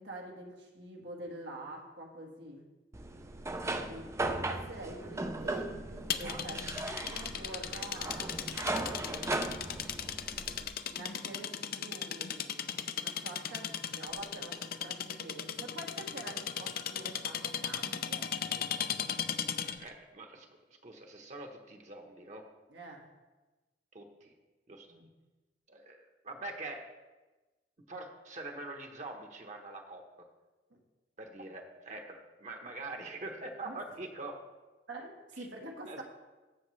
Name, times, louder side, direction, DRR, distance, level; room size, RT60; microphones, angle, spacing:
voice 1, 0.0-2.6 3.7-4.0 4.5-6.7 7.0-9.4 10.9-18.9 22.7-23.0 24.9-25.0 30.7-30.8 33.7-33.8 34.9-36.0, right 2 dB, 90° right, 0 dB, 1.7 m, -46 dB
sound 1, 2.9-10.7, right 2 dB, 15° right, 0.4 m, -37 dB
sound 2, 6.1-19.9, left 8 dB, 55° left, 0.5 m, -37 dB
voice 2, 19.6-22.4 23.9-24.3 24.7-24.9 25.7-26.8 27.9-30.0 31.2-34.4 35.4-35.5 35.9-36.0, right 2 dB, 45° right, 3 dB, 1.1 m, -44 dB
15.0 x 6.4 x 3.2 m, 1.2 s
head